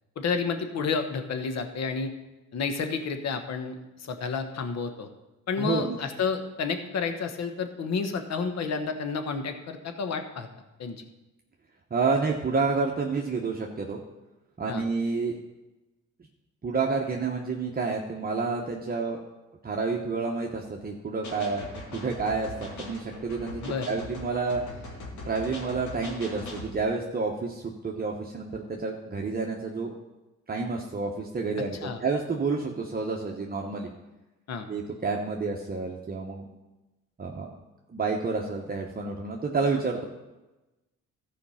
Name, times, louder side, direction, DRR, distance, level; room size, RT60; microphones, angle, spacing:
voice 1, 0.2-2.1 2.5-5.1 5.5-10.5 10.8-11.0 14.7-14.8 23.6-24.0 31.8-32.0 34.5-34.7, left 5 dB, 60° left, 7 dB, 1.2 m, -30 dB
voice 2, 5.6-6.0 11.9-14.0 14.6-15.4 16.6-19.2 19.6-24.6 25.2-30.0 30.5-33.9 34.7-36.4 37.2-37.5 37.9-40.0, right 4 dB, 30° right, 0 dB, 1.1 m, -29 dB
sound 1, 21.2-26.7, left 2 dB, 75° left, 2.4 m, -41 dB
13.5 x 5.0 x 5.7 m, 1.0 s
cardioid pair, 90°, 30 cm